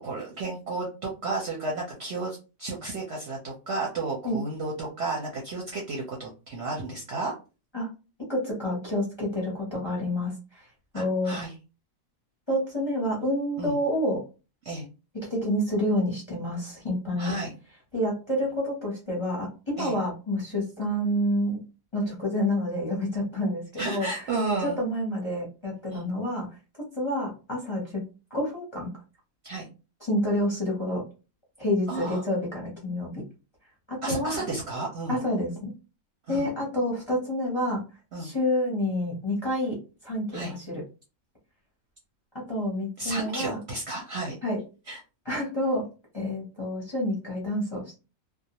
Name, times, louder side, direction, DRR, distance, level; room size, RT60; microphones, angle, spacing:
voice 1, 0.0-7.3 10.9-11.5 13.6-13.8 14.6-14.9 17.2-17.5 19.8-20.0 23.8-24.8 25.9-26.1 29.4-29.6 31.9-32.2 34.0-35.2 36.3-36.5 38.1-38.3 40.3-40.5 43.0-44.4 44.9-45.0, right 3 dB, 60° right, -2 dB, 0.8 m, -32 dB
voice 2, 8.3-10.7 10.9-11.4 12.5-14.2 15.1-17.3 17.9-21.6 21.9-24.1 24.6-26.5 27.0-28.0 28.3-28.9 30.0-31.0 31.6-33.2 33.9-34.4 35.1-35.7 36.3-37.8 38.2-39.8 40.0-40.8 42.3-43.6 44.4-44.6 45.3-45.8 46.1-48.0, left 1 dB, 25° left, -3 dB, 0.7 m, -28 dB
2.4 x 2.1 x 2.8 m, 0.31 s
omnidirectional pair, 1.5 m